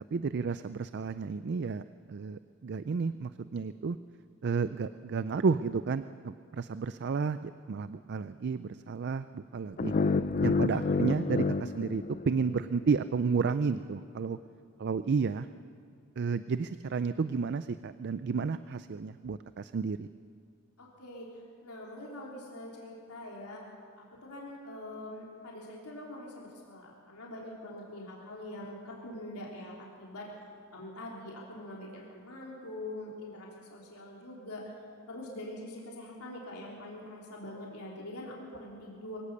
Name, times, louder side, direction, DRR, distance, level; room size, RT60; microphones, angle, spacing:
voice 1, 0.1-1.8 2.1-4.0 4.4-9.9 10.4-14.4 14.8-15.5 16.2-20.1, right 5 dB, 50° right, 13 dB, 0.4 m, -32 dB
sound 1, 9.8-12.9, left 3 dB, 35° left, 0.4 m, -29 dB
voice 2, 9.9-10.2 10.7-10.9 20.8-23.6 24.0-30.3 30.7-34.6 35.1-39.2, left 1 dB, 90° left, -4 dB, 3.4 m, -44 dB
23.5 x 17.0 x 6.8 m, 2.3 s
head